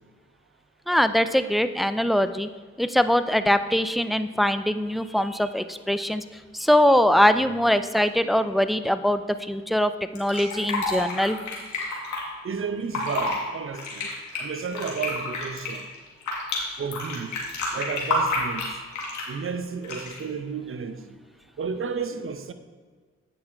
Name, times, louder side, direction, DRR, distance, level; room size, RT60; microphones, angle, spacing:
voice 1, 0.9-2.5 2.8-6.2 6.5-11.4, equal, ahead, 0.5 m, -22 dB
Fill (with liquid), 10.2-12.2 12.8-13.4 13.7-16.6 16.9-19.3 19.8-20.2, left 2 dB, 65° left, 2.3 m, -29 dB
voice 2, 12.4-15.9 16.8-17.3 17.7-18.7 19.3-21.2 21.6-22.5, right 5 dB, 40° right, 0.8 m, -32 dB
8.6 x 6.0 x 4.5 m
hypercardioid pair, 45°, 32 cm